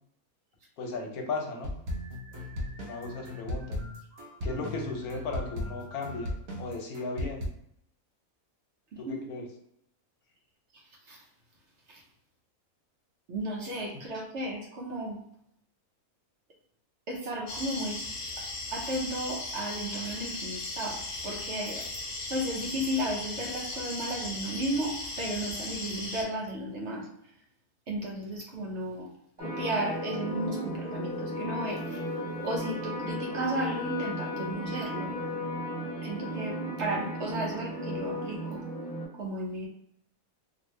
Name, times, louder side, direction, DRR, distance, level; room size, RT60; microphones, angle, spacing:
voice 1, 0.8-1.7 2.8-3.8 4.4-6.3 6.6-7.5 9.0-9.5, left 3 dB, 80° left, 2 dB, 1.2 m, -36 dB
sound 1, 1.6-7.5, left 1 dB, 75° right, 1.2 m, -36 dB
voice 2, 8.9-9.2 10.7-11.2 11.9-12.0 13.3-15.2 17.1-18.0 18.7-21.8 22.3-27.1 27.9-29.1 29.4-32.0 32.4-35.2 36.0-38.6 39.1-39.7, right 1 dB, 60° right, -2 dB, 0.9 m, -34 dB
sound 2, 17.5-26.2, left 2 dB, 50° left, 0.7 m, -37 dB
sound 3, 29.4-39.1, equal, 5° left, 1.0 m, -35 dB
3.0 x 2.6 x 3.1 m, 0.73 s
omnidirectional pair, 1.5 m